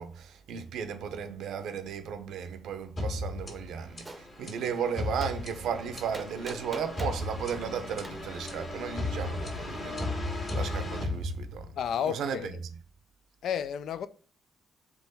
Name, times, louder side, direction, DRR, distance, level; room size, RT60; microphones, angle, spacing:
voice 1, 0.0-11.7 12.1-12.4, right 7 dB, 75° right, 0.6 m, -35 dB
sound 1, 3.0-11.9, left 2 dB, 40° left, 1.6 m, -35 dB
Gunshot gunfire, 4.0-4.2 5.2-5.4 6.1-7.2 8.0-8.2, right 2 dB, 20° right, 0.6 m, -42 dB
voice 2, 11.8-12.6 13.4-14.1, left 8 dB, 70° left, 0.3 m, -32 dB
3.8 x 3.0 x 4.1 m
cardioid pair, 90°, 0 cm